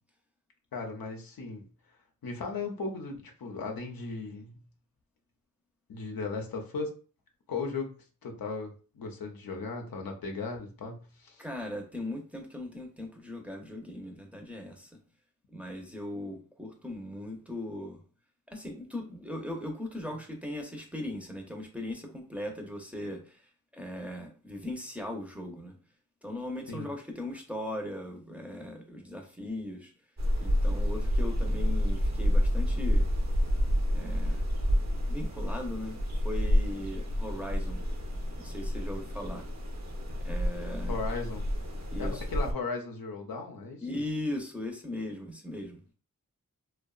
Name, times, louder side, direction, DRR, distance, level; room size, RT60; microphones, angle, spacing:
voice 1, 0.7-1.6 2.2-4.6 5.9-6.9 7.5-8.0 8.2-11.4 26.7-26.9 40.9-41.4 42.0-43.9, left 4 dB, 85° left, 0.6 m, -36 dB
voice 2, 11.4-14.9 15.5-18.0 18.5-23.4 23.7-25.7 26.2-29.9 30.4-33.1 33.9-34.4 35.1-37.8 38.4-39.5 40.2-41.0 41.9-42.2 43.8-45.8, left 1 dB, 5° right, 0.6 m, -38 dB
sound 1, 30.2-42.5, equal, 55° right, 0.6 m, -29 dB
2.6 x 2.2 x 2.3 m
cardioid pair, 40°, 34 cm